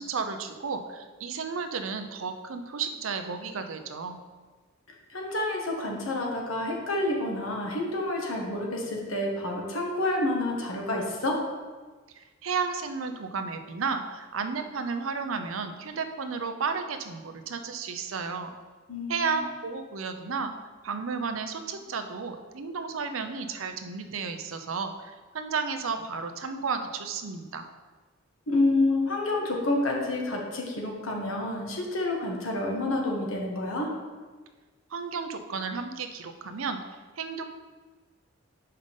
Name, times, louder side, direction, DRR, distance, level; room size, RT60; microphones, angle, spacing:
voice 1, 0.0-4.2 12.1-18.5 19.1-20.5 20.8-27.7 34.9-36.8 37.2-37.4, right 5 dB, 80° right, 7 dB, 0.6 m, -33 dB
voice 2, 5.1-11.4 18.9-19.4 28.5-33.9, left 2 dB, 85° left, 0 dB, 1.4 m, -28 dB
5.7 x 5.2 x 5.2 m, 1.4 s
head